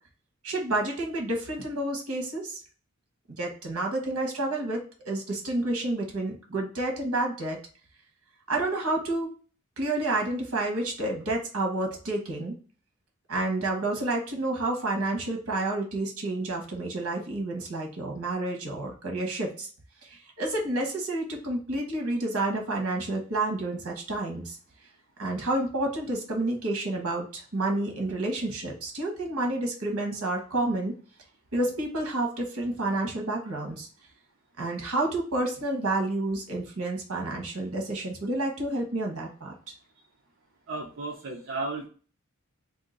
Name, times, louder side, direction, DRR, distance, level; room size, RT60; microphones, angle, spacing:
voice 1, 0.4-2.6 3.3-4.8 5.0-7.6 8.5-9.3 9.8-12.5 13.3-19.7 20.0-24.6 25.2-30.9 31.5-33.9 34.6-39.7, right 2 dB, 85° right, 1 dB, 1.2 m, -29 dB
voice 2, 40.7-41.9, right 2 dB, 60° right, -3 dB, 0.7 m, -34 dB
2.8 x 2.6 x 3.8 m, 0.39 s
head